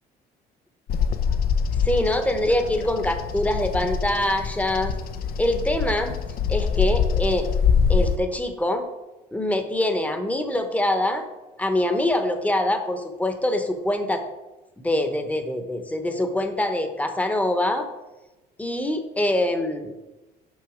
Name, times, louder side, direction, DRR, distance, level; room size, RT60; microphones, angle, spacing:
Bird vocalization bird call bird song, 0.9-8.2, left 6 dB, 60° left, 0.6 m, -24 dB
voice 1, 1.8-4.9 5.4-6.2 6.5-7.5 7.9-8.9 9.3-11.2 11.6-14.2 14.8-17.9 18.6-19.9, left 1 dB, 10° left, 7 dB, 0.9 m, -24 dB
6.3 x 5.6 x 4.9 m, 1.1 s
cardioid pair, 110°, 17 cm